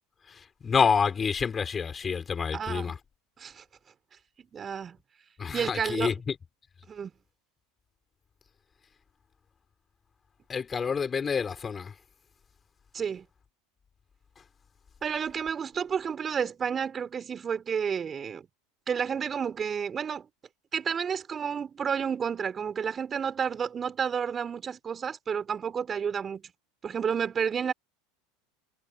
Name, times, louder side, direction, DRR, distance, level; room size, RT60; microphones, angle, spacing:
voice 1, 0.6-2.9 5.4-6.1 10.5-11.9, left 6 dB, 25° left, 6.2 m, -27 dB
voice 2, 2.5-2.9 3.4-3.6 4.4-5.0 5.5-6.1 6.9-7.1 12.9-13.2 15.0-18.5 18.9-20.3 20.7-26.4 26.8-27.7, right 7 dB, 30° right, 4.9 m, -31 dB
hypercardioid pair, 90°, 0 cm